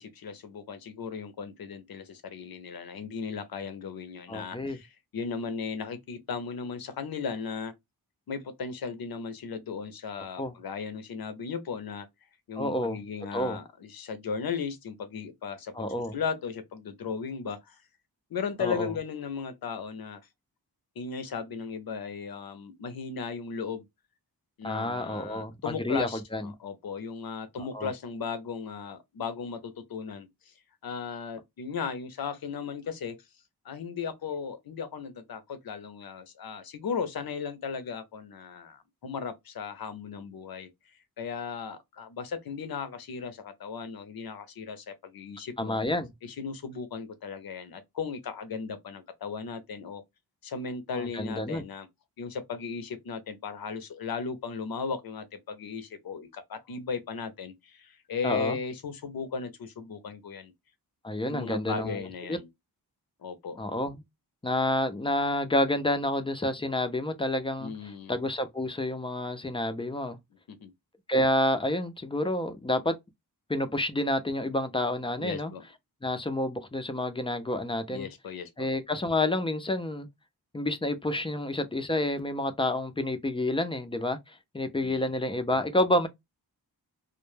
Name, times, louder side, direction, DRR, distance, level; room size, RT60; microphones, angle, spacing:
voice 1, 0.0-7.7 8.3-12.1 12.5-15.7 16.1-17.8 18.3-20.2 21.0-23.9 24.6-30.5 30.8-33.2 33.6-40.7 41.2-45.8 46.2-50.0 50.4-51.9 52.2-60.5 61.3-62.5 63.2-63.6 67.6-68.2 70.5-70.7 75.2-75.6 77.9-78.7 84.8-85.1, left 5 dB, 65° left, 0.6 m, -36 dB
voice 2, 4.3-4.8 10.4-10.5 12.6-13.0 13.3-13.6 15.7-16.2 18.6-18.9 24.6-26.5 27.6-27.9 45.6-46.1 50.9-51.6 58.2-58.6 61.0-62.0 62.3-62.4 63.6-64.0 64.4-67.7 68.1-70.2 71.1-73.0 73.5-75.5 76.0-78.1 78.6-80.1 80.5-86.1, left 1 dB, 15° left, 0.4 m, -29 dB
2.1 x 2.1 x 3.1 m
wide cardioid pair, 90°, 39 cm